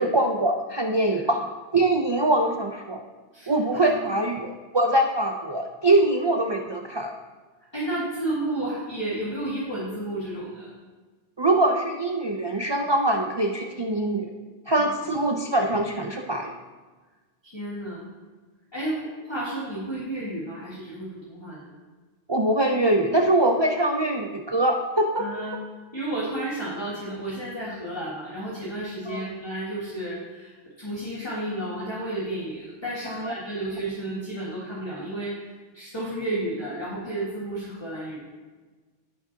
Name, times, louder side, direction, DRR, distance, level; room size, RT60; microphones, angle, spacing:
voice 1, 0.0-1.4 1.7-3.0 3.5-7.1 11.4-14.3 14.7-16.5 22.3-25.3 29.1-29.3 33.1-33.3, right 1 dB, 40° right, 3 dB, 0.4 m, -23 dB
voice 2, 3.3-4.2 7.7-10.7 14.8-14.9 17.4-18.1 18.7-21.7 25.2-25.6 25.9-30.5 30.8-35.3 35.7-38.2, right 1 dB, 20° left, -8 dB, 1.7 m, -32 dB
16.5 x 6.0 x 2.8 m, 1.3 s
omnidirectional pair, 1.2 m